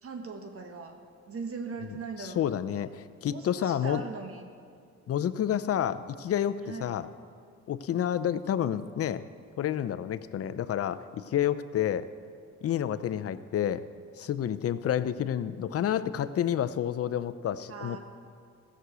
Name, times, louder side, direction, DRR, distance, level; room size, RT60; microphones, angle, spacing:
voice 1, 0.0-2.9 3.3-4.5 6.6-6.9 17.7-18.0, right 4 dB, 50° right, 4 dB, 1.4 m, -40 dB
voice 2, 2.2-4.0 5.1-7.1 7.7-9.2 9.6-12.1 12.6-13.8 14.2-18.0, left 10 dB, 50° left, 13 dB, 0.6 m, -29 dB
15.0 x 6.3 x 8.1 m, 2.2 s
cardioid pair, 90°, 30 cm